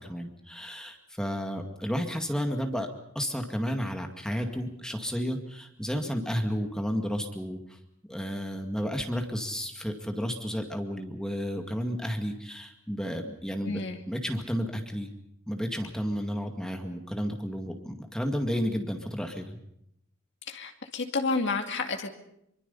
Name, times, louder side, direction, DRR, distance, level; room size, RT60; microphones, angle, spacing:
voice 1, 0.0-2.9 3.2-7.6 8.1-13.8 14.1-15.1 15.5-19.6, equal, 5° left, 4 dB, 2.1 m, -32 dB
voice 2, 13.6-14.0 20.5-22.1, left 3 dB, 60° left, 4 dB, 2.5 m, -30 dB
25.0 x 24.5 x 5.6 m, 0.77 s
head